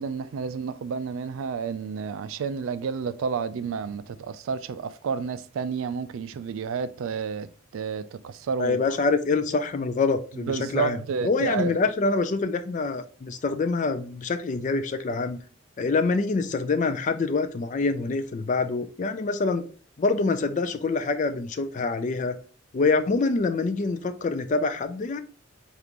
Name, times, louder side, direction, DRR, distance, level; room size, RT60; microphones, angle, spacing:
voice 1, 0.0-7.5 7.7-8.8 10.4-11.8, right 6 dB, 70° right, 0.3 m, -30 dB
voice 2, 8.6-15.4 15.8-19.6 20.0-22.4 22.7-25.2, left 3 dB, 35° left, 0.3 m, -25 dB
5.1 x 2.4 x 2.9 m
head